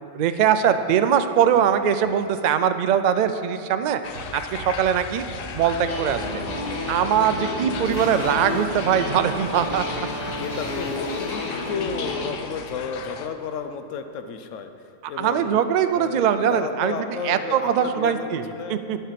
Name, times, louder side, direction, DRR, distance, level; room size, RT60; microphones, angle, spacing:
voice 1, 0.0-5.2 5.5-6.4 6.9-9.9 15.2-17.0 17.2-19.0, right 8 dB, 75° right, 10 dB, 0.4 m, -22 dB
sound 1, 4.0-13.3, left 7 dB, 60° left, 0.6 m, -37 dB
sound 2, 4.1-13.5, right 3 dB, 50° right, 1.3 m, -40 dB
sound 3, 5.7-12.3, left 2 dB, 35° left, 1.1 m, -31 dB
voice 2, 7.8-8.3 10.4-14.7 15.1-15.6 15.9-16.2 16.5-18.8, left 6 dB, 80° left, 8 dB, 1.0 m, -32 dB
11.5 x 5.6 x 5.8 m, 2.6 s
omnidirectional pair, 1.3 m